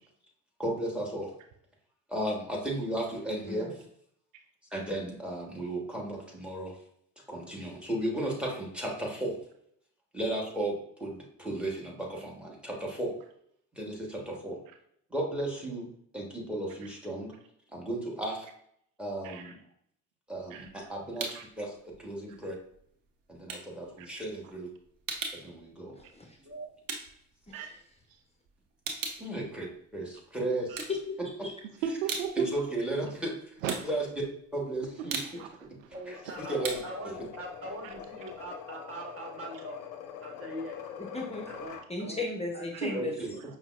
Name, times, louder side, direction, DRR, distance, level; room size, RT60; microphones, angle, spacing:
voice 1, 0.6-1.3 2.1-3.7 4.7-6.7 7.2-9.4 10.1-13.2 13.7-14.6 15.1-17.3 17.7-18.5 19.0-19.6 20.3-22.5 23.3-24.7 25.3-25.9 29.2-29.7 29.9-30.8 32.4-33.4 33.8-34.0 34.5-35.2 36.1-36.8 37.0-37.1 42.9-43.3, right 1 dB, 5° right, -1 dB, 1.3 m, -34 dB
voice 2, 19.2-19.5 20.5-20.7 21.3-21.4 24.0-24.1 26.0-26.1 27.5-27.7 28.1-28.2 30.7-30.8 31.8-32.5 33.6-33.9 35.1-36.0 36.2-36.3 37.8-37.9 42.7-43.0, right 7 dB, 75° right, 5 dB, 0.5 m, -36 dB
sound 1, 20.3-21.6 21.9-28.1 28.4-30.2 30.6-31.5 31.8-38.5, right 4 dB, 55° right, 0.8 m, -40 dB
voice 3, 26.0-26.4 27.5-27.6 30.9-31.5 41.0-41.5 41.9-43.1, left 3 dB, 15° left, 0 dB, 0.7 m, -36 dB
voice 4, 35.9-39.8 40.2-40.8 41.5-42.2 42.5-43.0, right 1 dB, 35° right, 0 dB, 1.3 m, -42 dB
sound 2, 36.1-41.9, left 8 dB, 55° left, 0.6 m, -43 dB
5.4 x 2.1 x 2.4 m, 0.69 s
figure-of-eight pair, 55°, 40 cm